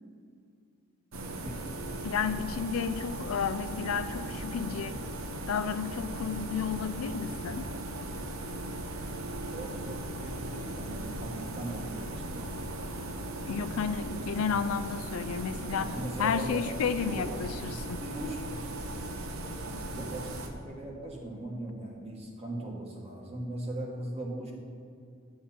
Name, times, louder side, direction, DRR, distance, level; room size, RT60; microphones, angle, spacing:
sound 1, 1.1-20.5, right 1 dB, 85° right, 0.9 m, -38 dB
voice 1, 1.3-1.7 9.5-12.7 15.4-16.7 17.0-17.6 18.0-18.5 19.9-24.5, right 1 dB, 30° right, -1 dB, 1.6 m, -39 dB
voice 2, 2.0-5.0 5.5-7.7 13.5-18.0, left 6 dB, 90° left, 12 dB, 0.4 m, -32 dB
9.4 x 8.6 x 4.3 m, 2.3 s
head